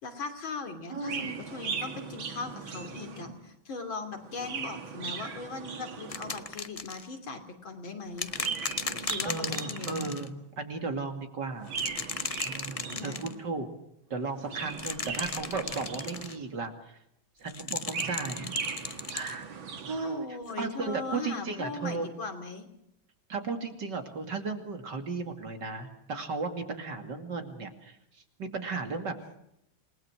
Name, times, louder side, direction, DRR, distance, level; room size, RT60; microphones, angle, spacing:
voice 1, 0.0-8.3 8.8-10.3 12.9-13.2 20.0-22.7, left 4 dB, 75° left, 6 dB, 3.7 m, -39 dB
voice 2, 0.9-1.4 9.2-10.3 10.6-11.7 12.0-12.2 12.4-13.7 14.1-17.0 17.4-18.6 19.1-19.5 19.9-22.1 23.3-28.0 28.4-29.1, right 4 dB, 60° right, 5 dB, 3.1 m, -35 dB
Chirp tweet, 1.0-3.5 4.2-6.6 8.2-10.3 11.6-13.5 14.3-16.6 17.6-20.2, right 6 dB, 75° right, 2.6 m, -39 dB
sound 1, 6.1-7.1 8.2-10.3 11.7-13.3 14.7-16.4 17.5-19.4 20.5-20.6, left 4 dB, 45° left, 0.4 m, -36 dB
28.5 x 20.0 x 6.2 m, 0.79 s
omnidirectional pair, 2.2 m